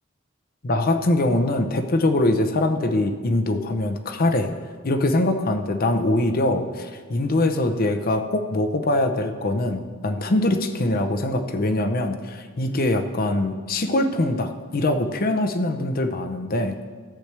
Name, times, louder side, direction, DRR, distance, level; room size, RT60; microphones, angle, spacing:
voice 1, 0.6-4.5 4.8-16.8, left 1 dB, 45° left, 7 dB, 0.7 m, -23 dB
13.5 x 7.9 x 3.4 m, 1.5 s
head